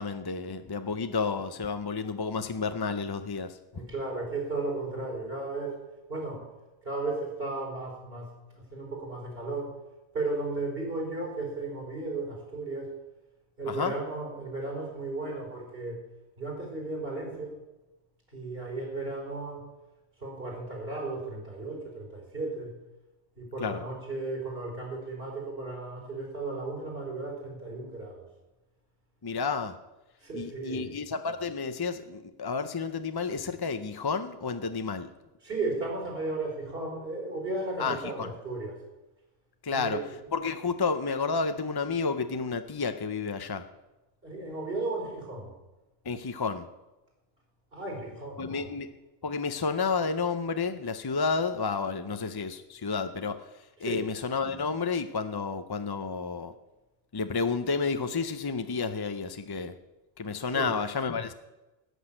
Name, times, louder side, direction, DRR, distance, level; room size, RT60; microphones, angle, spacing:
voice 1, 0.0-3.9 13.7-13.9 23.6-23.8 29.2-29.8 30.3-35.1 37.8-38.3 39.6-40.0 40.3-43.7 46.1-46.7 48.4-48.9 49.2-53.4 53.8-56.5 57.1-59.7 60.2-61.3, left 4 dB, 35° left, 9 dB, 0.4 m, -31 dB
voice 2, 3.7-5.8 6.1-6.4 6.8-8.3 8.5-9.7 10.1-12.9 13.6-16.0 16.4-17.6 18.3-19.7 20.2-22.7 23.4-28.2 30.2-31.0 35.4-38.8 39.7-40.0 44.2-45.5 47.7-48.7 53.8-54.1 60.5-60.7, right 3 dB, 55° right, -2 dB, 4.4 m, -35 dB
13.5 x 6.2 x 8.8 m, 1.0 s
omnidirectional pair, 1.2 m